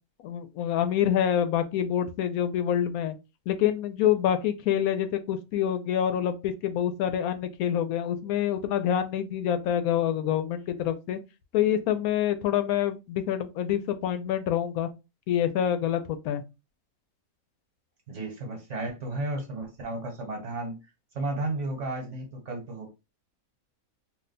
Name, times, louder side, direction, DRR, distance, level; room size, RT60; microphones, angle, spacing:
voice 1, 0.2-3.1 3.5-11.2 11.5-14.9 15.3-16.4, left 10 dB, 90° left, 1.0 m, -26 dB
voice 2, 18.1-20.8 21.1-22.9, right 2 dB, 60° right, 1.3 m, -33 dB
2.7 x 2.2 x 3.8 m
omnidirectional pair, 1.5 m